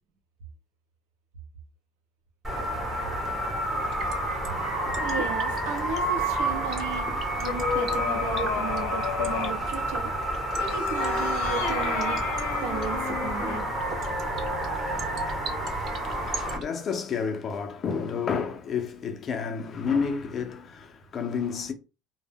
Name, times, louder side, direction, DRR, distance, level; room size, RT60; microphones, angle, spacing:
sound 1, 2.4-16.6, right 1 dB, 15° right, 0.8 m, -29 dB
sound 2, 3.9-16.6, right 4 dB, 40° right, 0.4 m, -38 dB
voice 1, 5.0-7.1 7.4-13.7, right 6 dB, 75° right, 0.7 m, -35 dB
sound 3, 6.7-9.6 10.6-13.7, left 6 dB, 75° left, 0.6 m, -33 dB
voice 2, 15.3-21.7, left 6 dB, 30° left, 0.5 m, -31 dB
2.1 x 2.0 x 3.4 m
cardioid pair, 135°, 0 cm